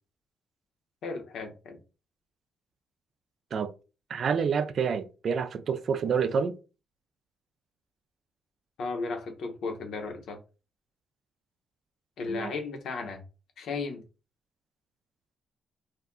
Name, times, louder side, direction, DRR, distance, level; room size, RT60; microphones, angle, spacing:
voice 1, 1.0-1.8 8.8-10.4 12.2-13.2 13.6-14.0, left 4 dB, 70° left, 0.8 m, -35 dB
voice 2, 4.1-6.6 12.3-12.5, right 6 dB, 55° right, 0.4 m, -28 dB
2.5 x 2.1 x 3.6 m
cardioid pair, 90°, 0 cm